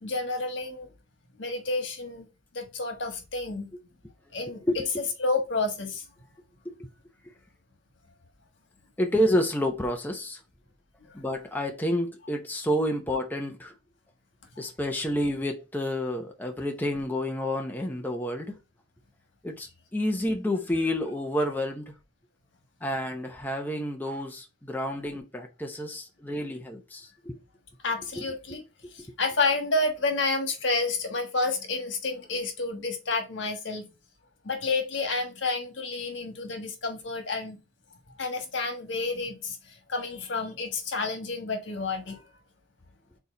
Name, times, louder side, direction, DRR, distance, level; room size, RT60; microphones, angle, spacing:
voice 1, 0.0-0.9 1.4-2.3 2.5-3.7 4.3-4.6 5.2-6.0 11.0-11.1 27.8-28.6 28.9-33.9 34.4-37.6 38.2-42.2, left 3 dB, 70° left, 1.4 m, -30 dB
voice 2, 4.6-5.1 6.6-6.7 9.0-10.4 11.1-13.7 14.6-18.6 19.4-21.9 22.8-27.4 28.2-28.3 28.8-28.9, equal, 10° left, 0.7 m, -29 dB
4.6 x 4.1 x 5.1 m
head